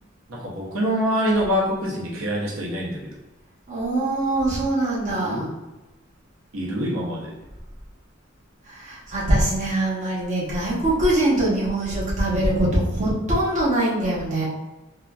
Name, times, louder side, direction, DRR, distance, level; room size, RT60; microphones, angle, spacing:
voice 1, 0.3-3.1 5.2-5.5 6.5-7.4, equal, 90° right, -3 dB, 0.7 m, -25 dB
voice 2, 3.7-5.5 8.6-14.4, right 1 dB, 35° right, -7 dB, 0.9 m, -23 dB
3.7 x 2.1 x 2.3 m, 1.0 s
head